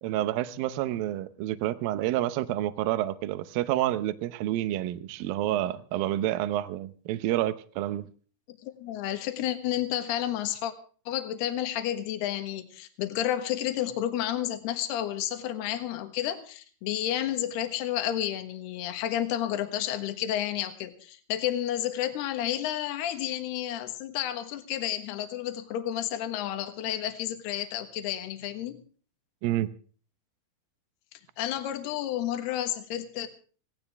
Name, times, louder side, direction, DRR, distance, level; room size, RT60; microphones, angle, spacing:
voice 1, 0.0-8.1 29.4-29.7, right 14 dB, 75° right, 2.2 m, -29 dB
voice 2, 8.6-10.7 11.1-28.8 31.4-33.3, left 12 dB, 70° left, 3.3 m, -31 dB
20.0 x 17.5 x 3.5 m
omnidirectional pair, 5.2 m